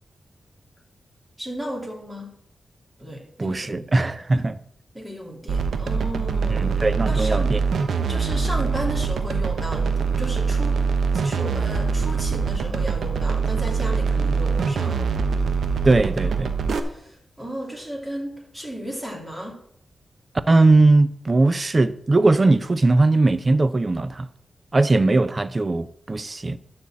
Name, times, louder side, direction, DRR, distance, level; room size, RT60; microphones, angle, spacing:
voice 1, 1.4-2.3 3.0-4.1 4.9-6.8 7.1-7.6 8.1-15.0 16.9-19.6, equal, 5° right, 2.8 m, -34 dB
voice 2, 3.4-4.6 6.5-7.6 15.8-16.5 20.5-24.3 24.7-26.6, right 2 dB, 35° right, 0.6 m, -19 dB
sound 1, 5.5-16.8, right 5 dB, 85° right, 1.0 m, -23 dB
12.0 x 4.3 x 7.6 m
wide cardioid pair, 95°, 0 cm